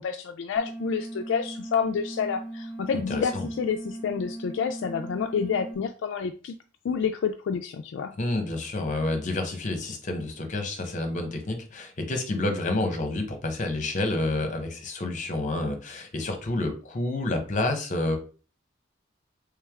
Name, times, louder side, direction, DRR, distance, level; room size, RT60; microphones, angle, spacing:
voice 1, 0.0-6.6 6.8-8.1, left 6 dB, 65° left, 6 dB, 0.3 m, -29 dB
sound 1, 0.6-5.7, right 1 dB, 5° left, 1.4 m, -38 dB
voice 2, 3.1-3.5 8.2-18.2, left 2 dB, 40° left, 5 dB, 0.9 m, -29 dB
3.4 x 3.3 x 3.5 m, 0.37 s
head